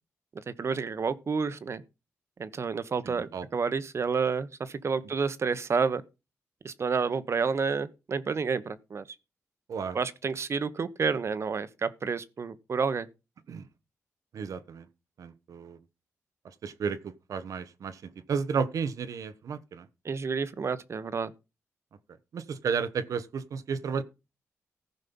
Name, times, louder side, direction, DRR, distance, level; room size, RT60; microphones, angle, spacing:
voice 1, 0.6-1.8 2.4-6.0 6.6-9.0 9.9-13.1 20.0-21.3, right 5 dB, 55° right, 1.1 m, -30 dB
voice 2, 3.0-3.5 9.7-10.0 13.5-13.7 14.3-14.9 15.2-15.8 16.4-19.9 22.3-24.0, right 6 dB, 75° right, 1.1 m, -33 dB
15.0 x 5.4 x 5.5 m
cardioid pair, 65°, 6 cm